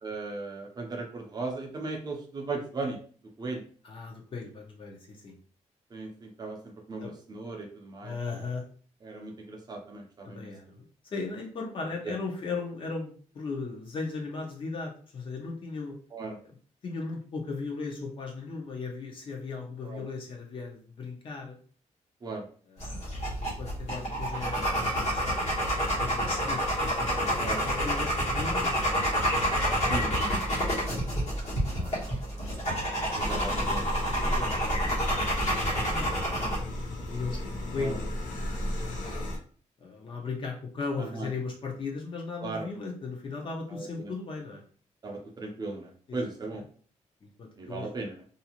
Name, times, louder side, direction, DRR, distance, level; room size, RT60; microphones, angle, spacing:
voice 1, 0.0-3.0 3.4-3.6 5.9-6.6 6.9-8.1 9.0-10.5 12.0-12.1 16.1-16.4 19.8-20.0 22.2-22.4 27.4-27.6 29.9-30.3 31.3-32.0 33.1-35.0 37.8-37.9 41.0-41.3 42.4-42.7 43.7-44.1 45.0-46.6 47.6-48.1, right 3 dB, 30° right, 1 dB, 0.5 m, -37 dB
voice 2, 3.8-5.3 7.0-7.1 8.0-8.6 10.2-16.0 16.4-16.5 16.8-21.6 22.7-30.4 33.1-33.2 34.3-38.1 38.5-39.2 39.8-44.6 46.1-46.2 46.5-46.6 47.2-47.9, left 4 dB, 40° left, 0 dB, 0.7 m, -38 dB
sound 1, 22.8-36.6, equal, 60° left, 1.3 m, -29 dB
sound 2, 33.2-39.4, left 1 dB, 85° left, 0.8 m, -34 dB
2.6 x 2.5 x 2.9 m, 0.43 s
wide cardioid pair, 180°, 13 cm